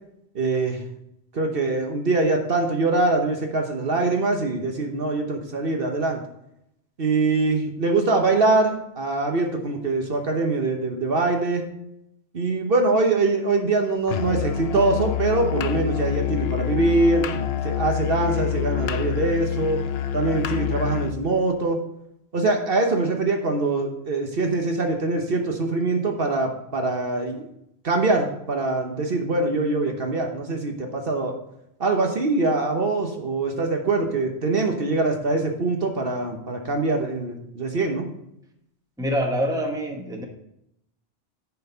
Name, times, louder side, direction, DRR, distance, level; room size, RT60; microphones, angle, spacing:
voice 1, 0.3-0.8 1.3-6.2 7.0-11.6 12.3-19.8 20.1-21.8 22.3-27.5 27.8-31.3 31.8-38.1, right 3 dB, 55° right, 3 dB, 1.2 m, -23 dB
Musical instrument, 14.1-21.2, left 10 dB, 65° left, 0.8 m, -27 dB
voice 2, 39.0-40.2, equal, 5° right, 2 dB, 1.1 m, -25 dB
10.0 x 4.6 x 5.5 m, 0.79 s
omnidirectional pair, 1.2 m